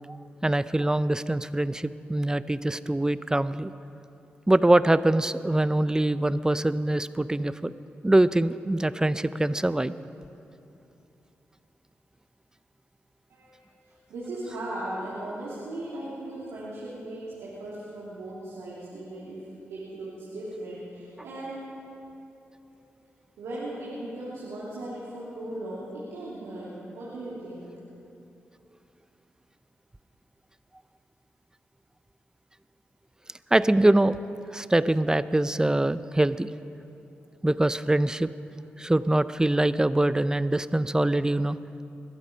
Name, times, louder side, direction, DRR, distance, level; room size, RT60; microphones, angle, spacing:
voice 1, 0.4-3.7 4.5-7.7 8.0-9.9 33.5-34.2 34.5-36.5 37.4-38.3 38.8-41.6, right 1 dB, 15° right, 15 dB, 0.6 m, -23 dB
voice 2, 13.8-21.5 22.7-22.8 23.4-27.7, right 1 dB, 85° right, -8 dB, 3.1 m, -37 dB
21.5 x 12.5 x 5.2 m, 2.8 s
supercardioid pair, 45°, 5 cm